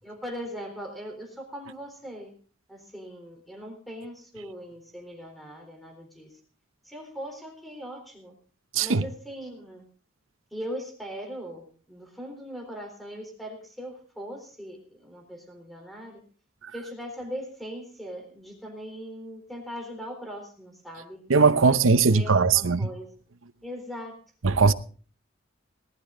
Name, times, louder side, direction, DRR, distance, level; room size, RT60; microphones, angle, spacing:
voice 1, 0.0-2.3 2.7-6.3 6.8-8.3 8.8-9.8 10.5-16.2 16.7-21.3 21.7-23.1 23.6-24.2, equal, ahead, 3.8 m, -40 dB
voice 2, 21.3-22.9 24.4-24.7, right 4 dB, 85° right, 0.8 m, -20 dB
19.0 x 11.5 x 3.9 m
head